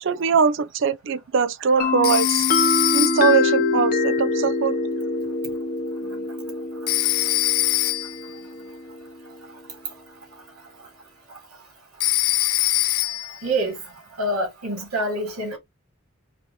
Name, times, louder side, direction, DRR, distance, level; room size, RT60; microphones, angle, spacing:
voice 1, 0.0-2.4 2.9-4.8, right 6 dB, 55° right, 0.4 m, -21 dB
sound 1, 1.8-9.4, left 4 dB, 40° left, 0.7 m, -25 dB
Telephone, 2.0-3.5 6.9-8.3 12.0-13.4, left 20 dB, 85° left, 0.3 m, -23 dB
voice 2, 13.4-13.8 14.2-15.6, right 1 dB, 85° right, 2.5 m, -26 dB
5.2 x 2.9 x 2.9 m
head